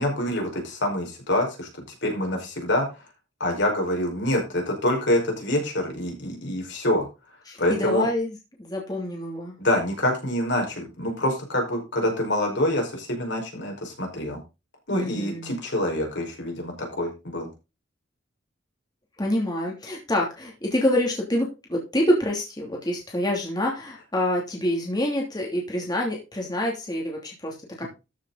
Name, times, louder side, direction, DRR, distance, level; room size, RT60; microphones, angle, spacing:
voice 1, 0.0-1.7 2.0-2.9 3.4-7.1 7.6-8.1 9.6-14.4 14.9-17.5, left 1 dB, 65° left, 2 dB, 5.1 m, -26 dB
voice 2, 7.5-9.5 14.9-15.5 19.2-27.9, left 1 dB, 20° left, -1 dB, 2.8 m, -27 dB
13.5 x 7.3 x 4.0 m, 0.27 s
head